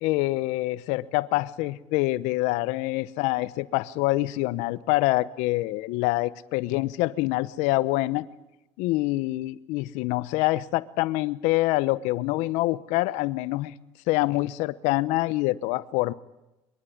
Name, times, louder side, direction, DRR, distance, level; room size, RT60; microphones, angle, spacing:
voice 1, 0.0-8.3 8.8-13.7 14.1-16.1, left 19 dB, 85° left, 18 dB, 0.9 m, -26 dB
25.0 x 23.5 x 9.4 m, 0.96 s
supercardioid pair, 90°, 12 cm